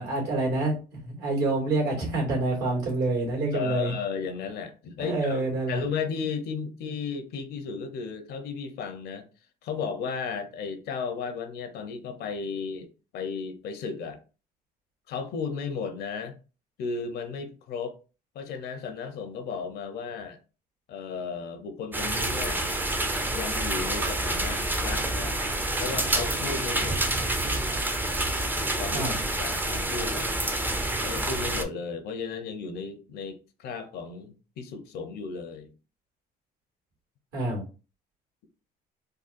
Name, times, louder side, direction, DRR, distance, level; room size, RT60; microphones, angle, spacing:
voice 1, 0.0-4.0 5.0-5.8 28.9-29.2 37.3-37.6, right 2 dB, 70° right, 1.8 m, -27 dB
voice 2, 3.5-5.4 5.7-9.2 9.6-12.9 13.1-14.2 15.1-16.4 16.8-18.0 18.3-20.4 20.9-22.6 23.3-25.4 25.8-27.2 28.8-29.1 29.4-30.3 31.0-35.7, left 5 dB, 70° left, 0.7 m, -34 dB
sound 1, 21.9-31.6, right 1 dB, 10° right, 0.5 m, -28 dB
3.8 x 2.3 x 2.6 m
cardioid pair, 110°, 17 cm